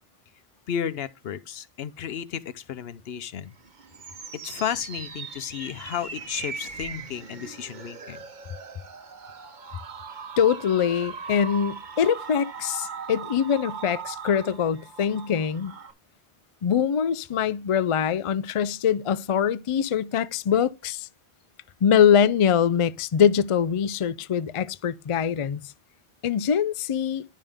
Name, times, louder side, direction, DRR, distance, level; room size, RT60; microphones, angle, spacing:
voice 1, 0.7-3.5 4.4-8.2, left 9 dB, 75° left, 0.9 m, -33 dB
sound 1, 3.5-15.9, right 6 dB, 50° right, 1.0 m, -39 dB
voice 2, 10.4-15.7 16.6-21.1 21.8-25.6 26.2-27.2, left 8 dB, 55° left, 0.3 m, -23 dB
10.5 x 5.5 x 3.4 m
omnidirectional pair, 1.1 m